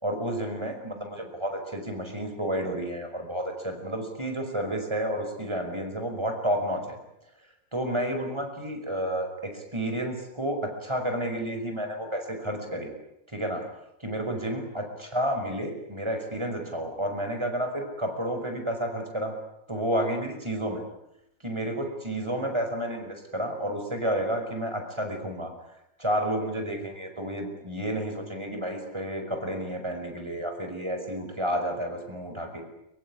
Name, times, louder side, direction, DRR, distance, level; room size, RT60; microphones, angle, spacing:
voice 1, 0.0-7.0 7.7-12.9 13.3-13.6 14.0-19.3 19.7-20.8 21.4-25.5 26.0-32.6, right 1 dB, 20° right, 4 dB, 5.5 m, -31 dB
23.5 x 23.5 x 9.9 m, 0.84 s
omnidirectional pair, 1.4 m